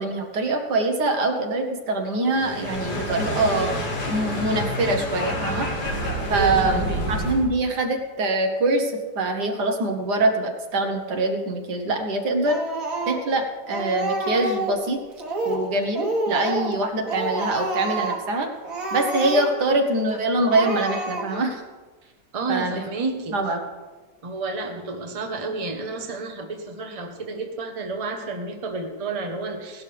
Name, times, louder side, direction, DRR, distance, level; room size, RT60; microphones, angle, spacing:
voice 1, 0.0-3.7 4.1-5.7 6.3-12.6 13.1-15.0 15.5-18.5 18.9-21.6 22.5-22.8 23.3-23.6, right 2 dB, 75° right, 4 dB, 1.8 m, -24 dB
sound 1, 2.3-7.5, equal, 80° left, 2.5 m, -28 dB
voice 2, 6.3-7.1 22.3-23.4 24.2-29.8, right 3 dB, 25° right, 4 dB, 0.9 m, -30 dB
Speech, 12.4-13.4 13.7-14.8 15.2-15.7 15.9-16.8 17.1-18.3 18.6-19.7 20.1-20.2 20.5-21.5, right 2 dB, 55° right, 1.8 m, -28 dB
17.0 x 11.5 x 3.4 m, 1.3 s
omnidirectional pair, 1.8 m